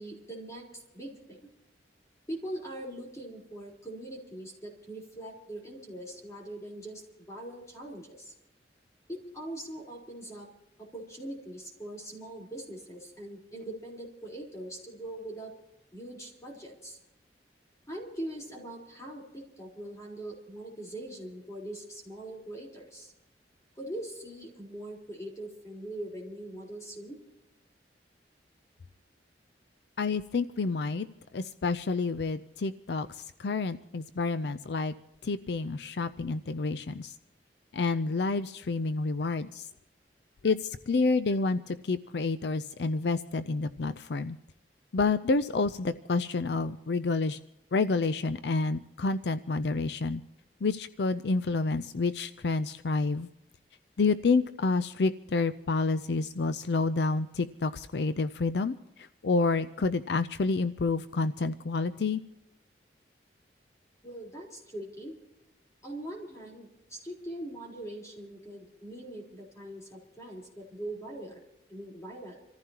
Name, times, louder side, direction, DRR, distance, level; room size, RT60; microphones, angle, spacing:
voice 1, 0.0-1.4 2.3-7.0 7.3-8.3 9.1-10.5 10.8-15.5 15.9-17.0 17.9-23.1 23.8-27.2 64.0-65.2 65.8-71.4 71.7-72.4, right 1 dB, 20° left, -2 dB, 4.0 m, -42 dB
voice 2, 30.0-31.1 31.3-33.1 33.4-34.9 35.2-37.1 37.7-39.6 40.4-44.4 44.9-47.4 47.7-50.2 50.6-53.3 54.0-58.8 59.2-62.2, left 3 dB, 70° left, 11 dB, 0.5 m, -29 dB
27.5 x 14.5 x 2.9 m, 0.90 s
head